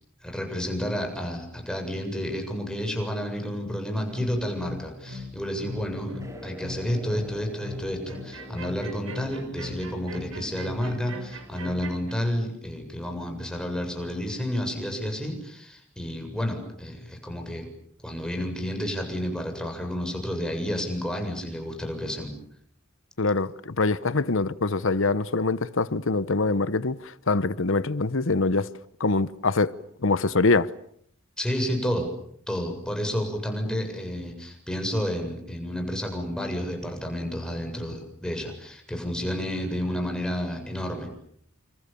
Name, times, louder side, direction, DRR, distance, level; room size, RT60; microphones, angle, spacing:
voice 1, 0.2-17.7 18.0-22.3 31.4-32.1 32.5-41.1, equal, 5° left, 7.6 m, -30 dB
sound 1, 4.1-12.1, left 1 dB, 80° right, 5.5 m, -39 dB
sound 2, 6.2-12.3, left 1 dB, 15° right, 5.1 m, -46 dB
voice 2, 23.2-28.7 29.0-29.8 30.0-30.7, left 3 dB, 65° left, 1.0 m, -24 dB
28.5 x 28.0 x 7.1 m
head